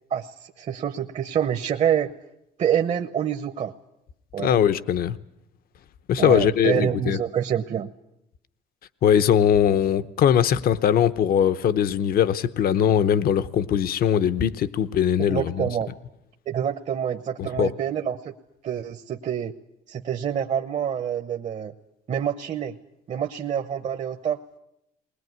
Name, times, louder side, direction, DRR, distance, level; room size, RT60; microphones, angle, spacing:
voice 1, 0.1-2.1 2.6-3.7 4.3-4.5 6.2-7.9 15.2-15.9 16.5-18.3 18.6-19.5 19.9-21.7 22.1-22.7 23.1-24.4, right 9 dB, 45° right, 1.0 m, -26 dB
voice 2, 4.4-5.2 6.1-7.2 9.0-15.7 17.4-17.7, left 9 dB, 60° left, 0.9 m, -21 dB
20.5 x 20.5 x 9.5 m
cardioid pair, 110°, 17 cm